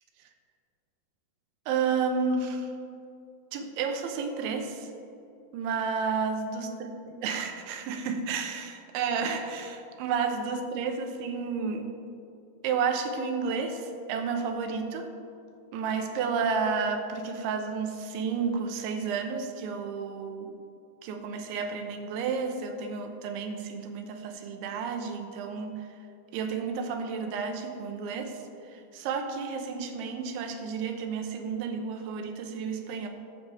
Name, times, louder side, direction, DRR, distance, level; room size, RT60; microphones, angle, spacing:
voice 1, 1.7-2.7 3.5-4.9 5.5-6.9 7.2-11.9 12.6-15.2 15.7-20.5 21.0-26.0 26.3-33.1, right 5 dB, 90° right, 5 dB, 3.4 m, -31 dB
21.0 x 7.8 x 3.5 m, 2.5 s
omnidirectional pair, 5.1 m